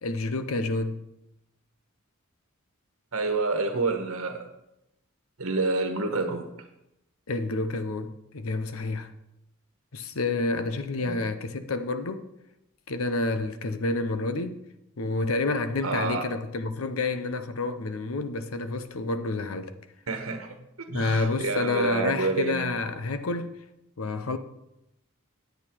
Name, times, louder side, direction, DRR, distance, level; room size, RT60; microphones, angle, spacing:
voice 1, 0.0-1.0 7.3-9.1 9.9-12.3 12.9-14.6 15.0-19.8 20.9-23.5 24.0-24.4, left 3 dB, 75° left, 0.8 m, -29 dB
voice 2, 3.1-4.4 5.4-6.4 11.0-11.2 15.8-16.2 20.1-20.5 20.9-22.6, right 3 dB, 85° right, 1.3 m, -28 dB
9.2 x 8.7 x 4.5 m
head